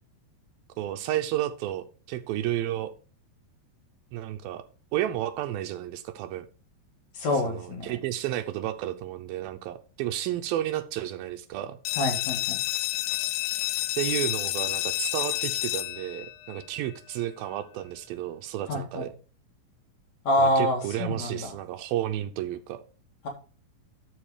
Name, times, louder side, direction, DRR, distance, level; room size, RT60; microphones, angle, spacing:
voice 1, 0.8-2.9 4.1-4.6 4.9-6.5 7.4-11.8 14.0-19.1 20.4-22.8, right 12 dB, 80° right, 10 dB, 2.4 m, -32 dB
voice 2, 7.1-7.9 12.0-12.6 18.7-19.0 20.2-21.5, left 1 dB, 50° left, 1 dB, 3.0 m, -26 dB
sound 1, 11.9-17.3, left 16 dB, 80° left, 2.2 m, -30 dB
12.0 x 4.8 x 4.9 m, 0.36 s
omnidirectional pair, 4.4 m